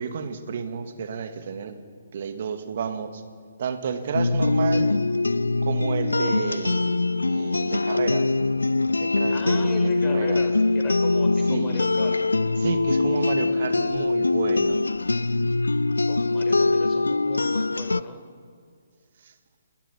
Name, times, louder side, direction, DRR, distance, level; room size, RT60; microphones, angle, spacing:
voice 1, 0.0-1.8 2.1-3.2 3.6-4.9 5.6-8.3 8.9-9.7 10.0-10.5 11.5-11.9 12.6-14.9, right 6 dB, 50° right, 8 dB, 2.2 m, -31 dB
sound 1, 4.1-18.0, left 3 dB, 80° left, 0.5 m, -23 dB
voice 2, 9.3-12.2 16.1-18.2, left 3 dB, 15° left, 3 dB, 4.2 m, -37 dB
29.5 x 19.0 x 5.7 m, 2.1 s
figure-of-eight pair, 135°, 0 cm